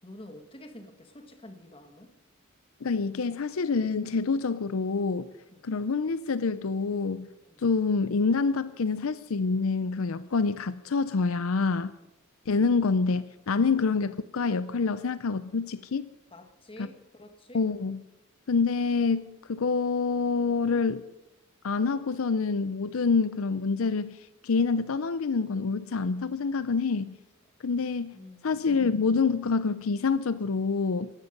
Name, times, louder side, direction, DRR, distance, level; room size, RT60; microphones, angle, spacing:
voice 1, 0.0-2.1 5.5-5.6 7.5-7.6 16.3-17.6 28.1-28.6, left 1 dB, 25° left, 1.8 m, -48 dB
voice 2, 2.8-5.3 5.6-7.3 7.6-11.9 12.5-16.1 16.8-16.9 17.5-18.0 18.5-21.0 21.6-24.2 24.4-27.2 27.6-28.2 28.4-31.1, left 4 dB, 70° left, 0.6 m, -27 dB
18.0 x 14.5 x 5.4 m
head